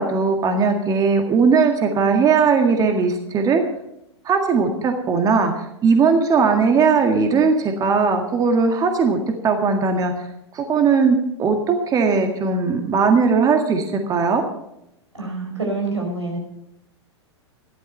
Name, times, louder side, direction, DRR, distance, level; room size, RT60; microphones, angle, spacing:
voice 1, 0.0-3.6 4.3-9.2 9.4-10.1 10.5-14.4, right 5 dB, 25° right, 5 dB, 1.8 m, -18 dB
voice 2, 15.1-16.4, right 3 dB, 90° right, 0 dB, 5.1 m, -26 dB
13.5 x 12.0 x 5.4 m, 0.80 s
figure-of-eight pair, 95°, 15 cm